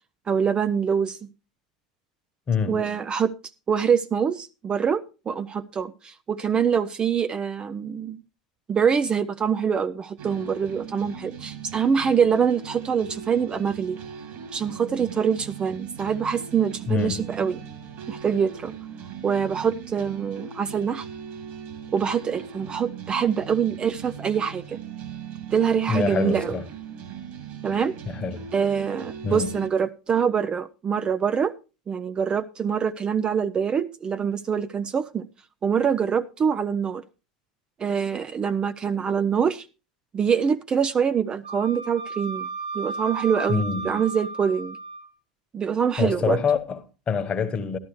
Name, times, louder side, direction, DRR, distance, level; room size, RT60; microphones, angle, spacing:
voice 1, 0.3-1.2 2.7-3.3 3.7-8.2 8.7-14.0 14.5-17.6 18.1-18.7 19.2-21.1 21.9-24.8 25.5-26.6 27.6-28.0 28.5-31.5 31.9-35.3 35.6-37.0 37.8-39.7 40.1-42.5 42.7-44.8 45.5-46.4, right 7 dB, 25° right, 0.5 m, -24 dB
voice 2, 2.5-2.8 16.9-17.3 25.9-26.7 28.1-28.5 29.2-29.6 43.5-43.9 46.0-47.8, left 6 dB, 30° left, 1.2 m, -26 dB
sound 1, 10.2-29.7, right 8 dB, 50° right, 2.4 m, -39 dB
Wind instrument woodwind instrument, 41.4-45.1, right 3 dB, 75° right, 4.5 m, -34 dB
13.0 x 12.0 x 3.1 m
figure-of-eight pair, 80°, 4 cm